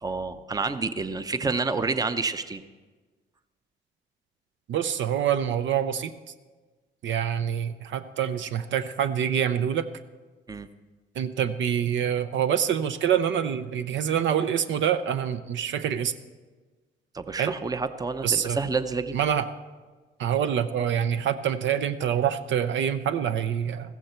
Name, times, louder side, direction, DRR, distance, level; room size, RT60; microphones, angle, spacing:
voice 1, 0.0-2.6 10.5-10.7 17.1-19.2, right 4 dB, 20° right, 11 dB, 0.7 m, -29 dB
voice 2, 4.7-6.1 7.0-9.9 11.2-16.1 17.4-17.5 18.2-18.6 19.1-19.5 20.2-24.0, right 9 dB, 70° right, 11 dB, 0.7 m, -26 dB
15.0 x 14.5 x 4.5 m, 1.3 s
cardioid pair, 90°, 20 cm